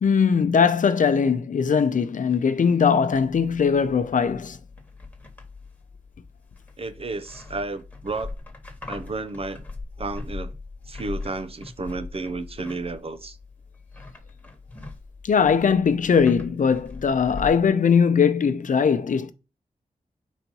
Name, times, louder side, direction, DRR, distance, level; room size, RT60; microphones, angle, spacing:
voice 1, 0.0-4.6 15.2-19.3, left 6 dB, 65° left, 0.6 m, -20 dB
sound 1, 3.1-17.7, left 3 dB, 10° left, 1.5 m, -40 dB
voice 2, 6.8-8.3 8.9-9.6 10.0-10.5 10.9-13.4, right 3 dB, 45° right, 0.7 m, -32 dB
4.5 x 4.0 x 5.3 m
wide cardioid pair, 100°, 14 cm